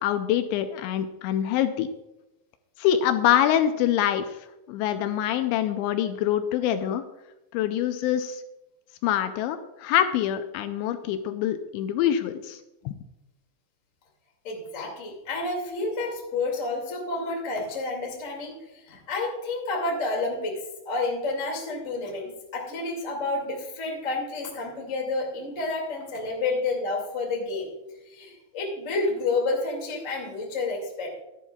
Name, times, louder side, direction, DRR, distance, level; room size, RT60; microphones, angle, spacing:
voice 1, 0.0-1.9 2.8-4.3 4.7-7.0 7.5-8.4 9.0-12.6 12.9-13.0, left 11 dB, 80° left, 8 dB, 2.8 m, -25 dB
voice 2, 14.4-27.7 28.1-31.2, left 3 dB, 30° left, 0 dB, 1.4 m, -30 dB
15.5 x 11.0 x 2.3 m, 0.95 s
omnidirectional pair, 5.3 m